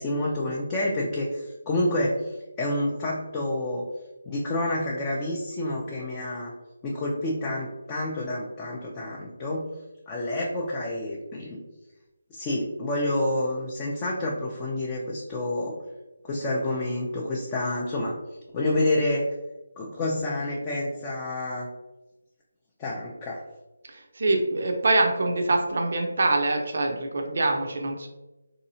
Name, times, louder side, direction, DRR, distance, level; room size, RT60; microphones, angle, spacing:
voice 1, 0.0-3.8 4.3-6.5 6.8-9.7 10.1-11.6 12.3-15.8 16.2-18.2 18.5-19.3 19.8-21.7 22.8-23.4, left 1 dB, 15° left, -3 dB, 0.4 m, -28 dB
voice 2, 23.9-28.1, right 2 dB, 60° right, 3 dB, 0.6 m, -24 dB
3.9 x 2.7 x 2.7 m, 1.0 s
figure-of-eight pair, 165°, 0 cm